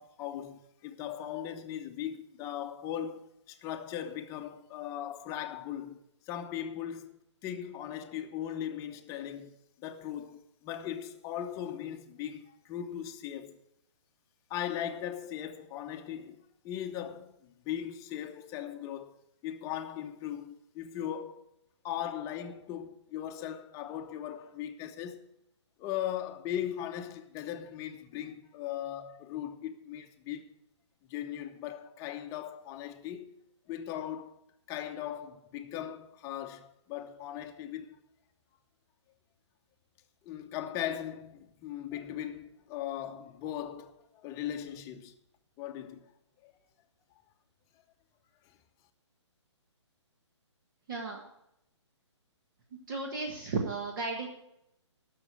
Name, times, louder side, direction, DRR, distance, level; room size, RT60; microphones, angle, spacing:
voice 1, 0.0-6.0 6.3-13.5 14.5-16.4 16.6-19.1 19.4-21.4 21.8-25.3 25.8-30.5 31.1-33.3 33.7-34.4 34.7-38.0 40.2-45.2 45.6-46.0 46.4-46.5, left 10 dB, 20° left, 0.9 m, -38 dB
voice 2, 50.9-51.2 52.9-54.3, right 3 dB, 45° right, 1.7 m, -34 dB
11.5 x 6.6 x 8.5 m
hypercardioid pair, 140°, 15 cm